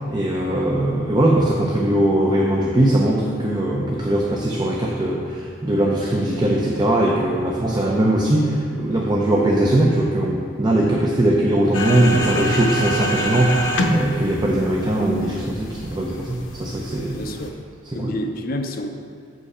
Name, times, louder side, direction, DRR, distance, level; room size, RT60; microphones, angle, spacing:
voice 1, 0.1-17.2 17.9-18.2, right 1 dB, 25° right, -2 dB, 0.6 m, -20 dB
sound 1, 11.7-17.5, equal, 85° left, 0.7 m, -27 dB
voice 2, 12.0-12.5 17.1-17.6 17.9-18.9, left 1 dB, 50° left, 5 dB, 0.5 m, -29 dB
7.6 x 5.2 x 4.9 m, 2.2 s
head